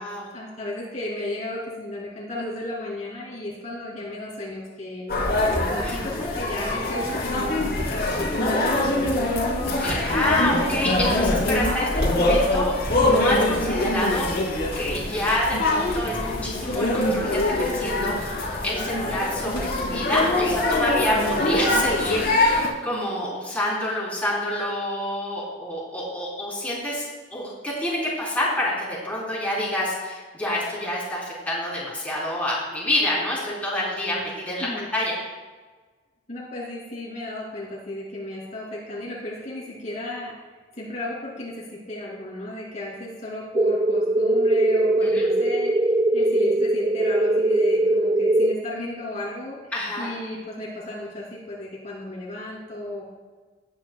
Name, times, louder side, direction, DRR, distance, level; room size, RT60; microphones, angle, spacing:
voice 1, 0.3-9.3 34.6-34.9 36.3-40.3 40.7-49.7 50.0-53.1, left 1 dB, 40° left, -5 dB, 2.7 m, -34 dB
sound 1, 5.1-22.7, left 1 dB, 55° left, 3.1 m, -23 dB
voice 2, 5.8-6.3 9.8-14.3 14.8-34.7 34.9-35.2 45.0-45.3 49.7-50.1, left 1 dB, 10° left, -7 dB, 3.6 m, -28 dB
sound 2, 43.5-48.5, right 1 dB, 25° right, 0.4 m, -21 dB
19.0 x 9.0 x 2.3 m, 1.4 s
head